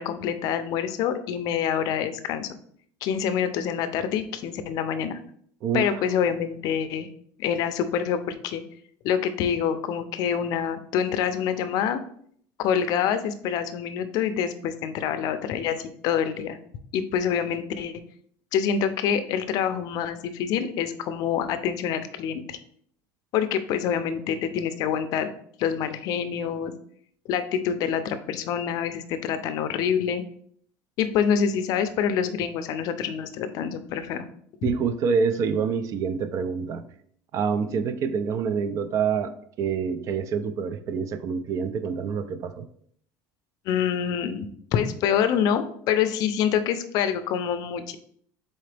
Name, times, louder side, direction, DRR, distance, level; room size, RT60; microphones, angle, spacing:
voice 1, 0.0-2.5 3.0-5.2 5.7-7.1 7.4-8.6 9.0-12.0 12.6-16.6 16.9-17.9 18.5-22.6 23.3-25.3 25.6-26.7 27.3-30.2 31.0-34.2 43.7-48.0, left 8 dB, 55° left, 10 dB, 0.5 m, -26 dB
voice 2, 34.6-36.8 37.3-39.3 39.6-42.6, right 6 dB, 45° right, 11 dB, 0.4 m, -26 dB
4.1 x 3.8 x 3.3 m, 0.63 s
cardioid pair, 140°, 8 cm